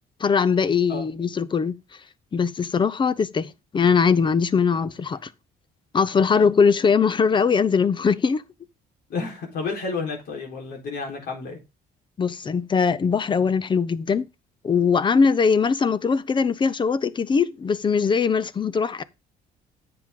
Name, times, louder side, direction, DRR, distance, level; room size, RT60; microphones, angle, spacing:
voice 1, 0.2-1.8 2.3-5.3 5.9-8.4 12.2-14.3 14.6-19.0, left 5 dB, 30° left, 0.7 m, -21 dB
voice 2, 9.1-11.6, left 4 dB, 65° left, 4.1 m, -31 dB
10.0 x 7.8 x 3.7 m
cardioid pair, 110°, 17 cm